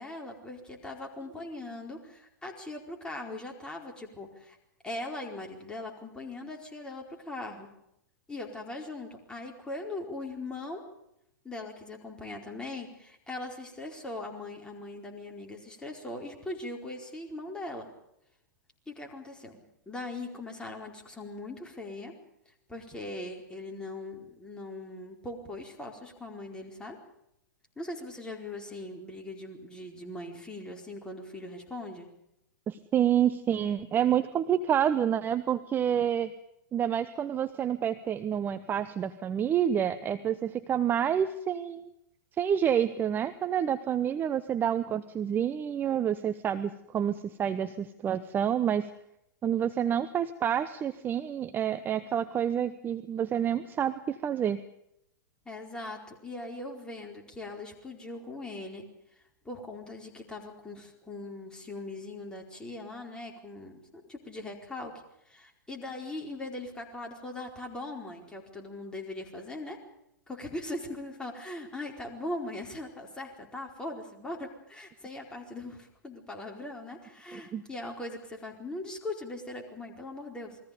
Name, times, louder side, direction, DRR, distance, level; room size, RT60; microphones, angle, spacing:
voice 1, 0.0-4.6 4.8-7.7 8.3-10.9 11.4-17.9 18.9-22.1 22.7-27.0 27.8-32.1 55.4-58.9 59.4-64.9 65.3-69.8 70.3-80.6, left 2 dB, 10° left, 1 dB, 4.6 m, -40 dB
voice 2, 32.7-36.3 36.7-41.9 42.4-48.9 49.4-54.6 77.3-77.6, right 9 dB, 20° right, 11 dB, 0.9 m, -28 dB
29.0 x 21.5 x 5.2 m, 0.78 s
figure-of-eight pair, 105°, 10 cm